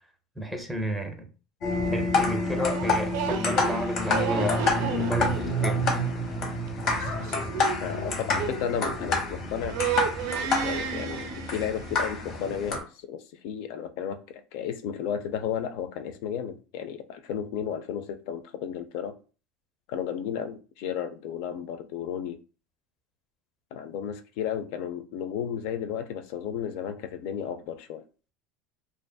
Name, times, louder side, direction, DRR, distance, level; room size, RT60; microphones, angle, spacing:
voice 1, 0.4-1.3 1.9-6.0, equal, ahead, 0.6 m, -32 dB
sound 1, 1.6-12.8, left 2 dB, 50° left, 0.8 m, -28 dB
sound 2, 2.7-9.4 9.6-12.1, right 9 dB, 75° right, 0.4 m, -33 dB
voice 2, 7.8-9.8 10.6-19.2 19.9-22.4 23.7-28.0, left 8 dB, 70° left, 0.3 m, -33 dB
2.4 x 2.4 x 2.2 m
supercardioid pair, 125°, 0 cm